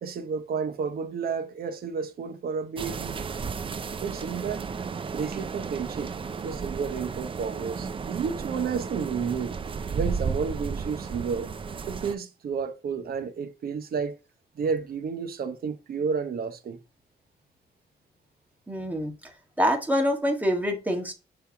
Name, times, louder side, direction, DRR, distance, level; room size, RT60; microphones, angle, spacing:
voice 1, 0.0-3.2 4.0-4.6 5.1-6.1 6.4-9.6 9.9-11.5 11.9-14.2 14.5-16.8, right 6 dB, 55° right, 1.0 m, -31 dB
sound 1, 2.8-12.2, right 5 dB, 30° right, 0.5 m, -33 dB
voice 2, 18.7-19.1 19.6-21.1, equal, 10° right, 1.6 m, -25 dB
7.0 x 3.4 x 4.6 m
wide cardioid pair, 145°, 18 cm